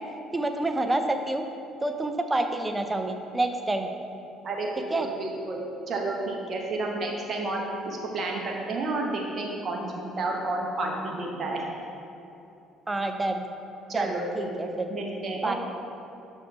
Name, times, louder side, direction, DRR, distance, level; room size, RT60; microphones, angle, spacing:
voice 1, 0.3-1.4 1.8-3.9 4.9-5.1 12.9-13.4 13.9-14.9 15.4-15.5, right 2 dB, 20° right, 6 dB, 0.6 m, -28 dB
voice 2, 4.4-11.6 13.9-15.5, right 2 dB, 50° right, -1 dB, 1.0 m, -31 dB
5.9 x 5.5 x 4.5 m, 2.7 s
hypercardioid pair, 55°, 0 cm